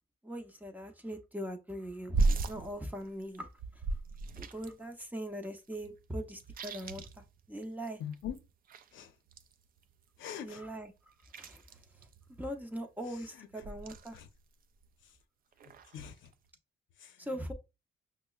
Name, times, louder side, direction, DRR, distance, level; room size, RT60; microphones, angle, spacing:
voice 1, 0.2-3.8 4.4-8.0 10.4-11.6 12.4-14.2 17.2-17.5, equal, 10° right, 0.6 m, -41 dB
sound 1, 2.1-4.9 5.2-5.3 5.4-7.9 8.1-10.2 10.7-12.8 13.5-14.4 14.8-15.2 15.5-16.5, right 3 dB, 45° right, 0.4 m, -36 dB
voice 2, 8.0-8.4 8.9-9.2 10.2-10.6 13.1-13.6 14.1-14.3 15.0-15.2 15.6-16.3 17.0-17.3, left 9 dB, 75° left, 0.6 m, -44 dB
5.4 x 2.1 x 2.3 m
cardioid pair, 90°, 20 cm